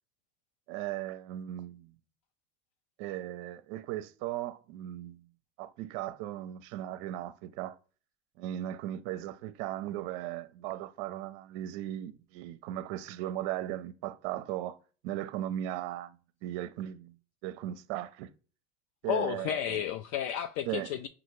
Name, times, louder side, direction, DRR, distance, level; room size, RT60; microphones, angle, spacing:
voice 1, 0.7-2.0 3.0-5.3 5.6-7.8 8.4-14.8 15.0-17.1 17.4-18.3 19.0-19.8 20.7-20.9, right 13 dB, 65° right, 0.5 m, -37 dB
voice 2, 19.1-21.1, left 10 dB, 55° left, 0.4 m, -32 dB
5.6 x 2.4 x 3.0 m
supercardioid pair, 100°, 34 cm